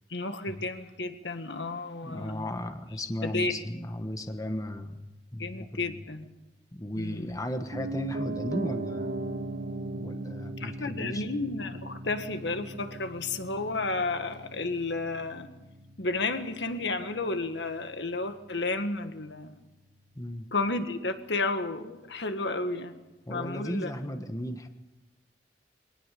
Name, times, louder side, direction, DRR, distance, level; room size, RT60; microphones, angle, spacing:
voice 1, 0.1-2.5 3.2-3.5 5.4-6.3 7.0-7.3 10.6-15.5 16.0-19.6 20.5-22.9 23.3-23.9, left 3 dB, 80° left, 8 dB, 1.7 m, -32 dB
voice 2, 2.0-6.0 6.7-9.2 10.0-11.3 20.1-20.5 23.3-24.7, left 1 dB, 20° left, 7 dB, 1.3 m, -36 dB
Piano, 7.7-17.7 18.0-18.1, right 2 dB, 85° right, 2.9 m, -38 dB
22.5 x 19.0 x 6.8 m, 0.99 s
head